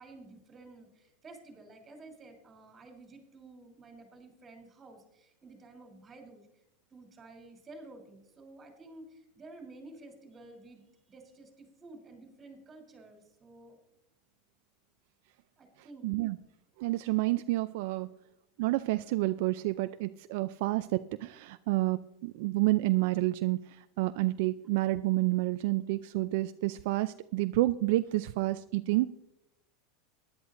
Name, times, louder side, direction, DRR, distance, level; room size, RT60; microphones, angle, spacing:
voice 1, 0.0-6.6 6.9-13.8 15.6-16.5, right 2 dB, 20° right, 3 dB, 3.4 m, -52 dB
voice 2, 16.0-16.4 16.8-18.1 18.6-23.6 24.0-29.2, right 18 dB, 65° right, 11 dB, 0.4 m, -29 dB
18.5 x 11.0 x 2.6 m, 0.85 s
supercardioid pair, 130°, 0 cm